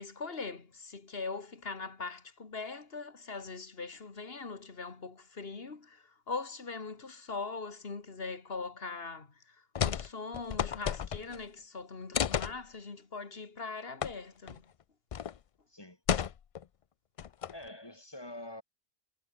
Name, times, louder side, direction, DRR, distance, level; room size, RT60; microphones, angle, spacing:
voice 1, 0.0-14.6, left 4 dB, 70° left, 2.3 m, -41 dB
sound 1, 9.7-10.1 10.3-11.4 12.1-12.6 14.0-14.1 14.5-14.6 15.1-15.4 16.1-16.6 17.2-17.7, left 8 dB, 50° left, 0.4 m, -32 dB
voice 2, 15.7-16.0 17.5-18.6, left 1 dB, 25° left, 2.5 m, -45 dB
omnidirectional pair, 1.1 m